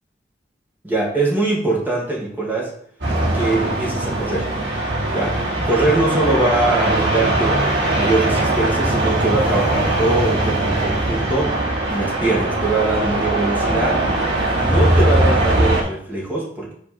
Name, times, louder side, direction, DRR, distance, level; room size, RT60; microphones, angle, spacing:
voice 1, 0.8-2.7 3.3-4.5 5.1-7.7 7.9-14.0 14.6-16.7, right 2 dB, 10° right, -3 dB, 1.8 m, -22 dB
sound 1, 3.0-15.8, right 1 dB, 75° right, 2.5 m, -20 dB
5.1 x 4.6 x 5.7 m, 0.63 s
head